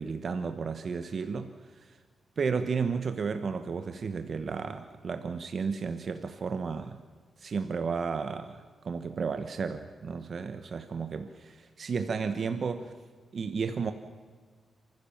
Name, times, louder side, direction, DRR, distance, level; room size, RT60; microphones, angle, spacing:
voice 1, 0.0-1.5 1.8-1.9 2.4-7.0 7.4-12.9 13.3-13.9, right 5 dB, 45° right, 9 dB, 1.1 m, -33 dB
29.0 x 15.0 x 7.2 m, 1.5 s
wide cardioid pair, 155°, 0 cm